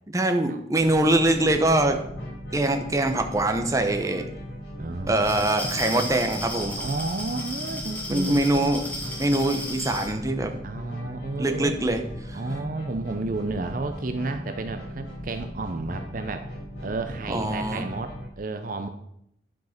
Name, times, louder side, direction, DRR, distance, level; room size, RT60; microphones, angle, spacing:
voice 1, 0.1-2.0 2.5-4.2 5.1-6.8 8.1-8.9 9.2-10.5 11.4-12.0 12.3-12.4 17.3-17.9, right 1 dB, 20° right, 5 dB, 0.9 m, -23 dB
sound 1, 0.8-18.3, equal, 90° left, 4.3 m, -38 dB
voice 2, 4.8-5.8 6.8-8.7 10.6-11.8 12.3-16.5 16.8-18.9, right 2 dB, 45° right, 7 dB, 0.6 m, -32 dB
Glass, 5.1-10.1, left 1 dB, 10° left, 1.9 m, -35 dB
10.5 x 5.4 x 5.9 m, 0.76 s
head